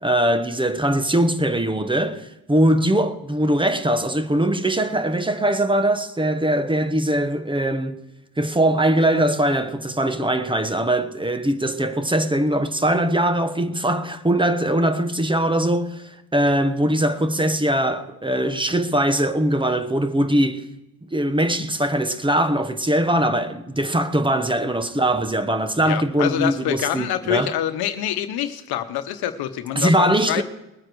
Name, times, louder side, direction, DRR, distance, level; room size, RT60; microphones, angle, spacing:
voice 1, 0.0-8.0 8.4-20.6 21.1-27.5 29.7-30.4, right 1 dB, 15° right, 1.1 m, -21 dB
voice 2, 25.9-30.4, left 11 dB, 85° left, 1.0 m, -26 dB
20.5 x 9.3 x 4.7 m
cardioid pair, 75°, 37 cm